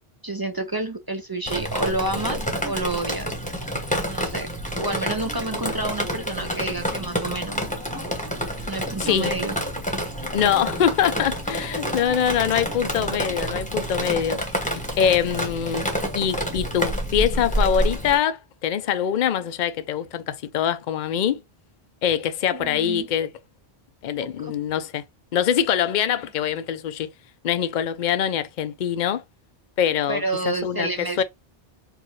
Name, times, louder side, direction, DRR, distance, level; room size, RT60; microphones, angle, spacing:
voice 1, 0.2-3.3 4.1-4.5 4.8-7.6 8.7-9.6 22.5-23.1 24.4-24.5 30.1-31.2, right 2 dB, 30° right, 0.4 m, -29 dB
Drip, 1.5-18.2, equal, 10° left, 1.0 m, -28 dB
voice 2, 9.0-9.3 10.3-14.4 15.0-15.9 16.1-21.4 22.0-23.3 24.0-25.0 25.3-27.1 27.4-29.2 29.8-31.2, left 9 dB, 55° left, 0.6 m, -24 dB
4.7 x 2.5 x 3.1 m
omnidirectional pair, 1.0 m